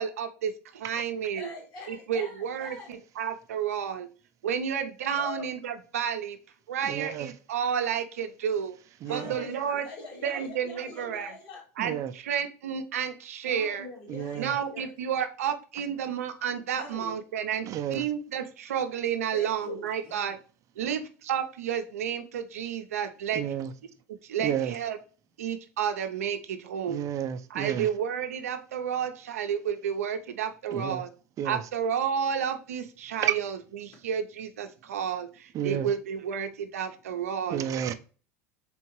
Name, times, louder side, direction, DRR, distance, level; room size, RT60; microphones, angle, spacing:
voice 1, 0.0-1.5 1.9-4.1 4.4-6.4 6.7-8.8 9.1-9.9 10.2-11.3 11.8-13.9 14.4-20.4 20.8-23.4 24.2-25.0 25.4-27.0 27.5-31.1 31.4-37.6, right 8 dB, 90° right, 0.6 m, -31 dB
voice 2, 1.3-3.0 5.1-5.5 9.0-11.6 13.5-14.9 16.8-17.1 19.3-20.3, left 3 dB, 55° left, 2.3 m, -43 dB
voice 3, 6.8-7.3 9.0-9.4 11.8-12.1 14.1-14.5 17.7-18.0 23.3-23.7 24.4-24.7 26.9-27.9 30.7-31.0 31.4-31.6 33.2-33.4 35.5-35.9 37.5-37.9, right 10 dB, 45° right, 0.5 m, -31 dB
3.9 x 3.5 x 3.0 m
hypercardioid pair, 95°, 8 cm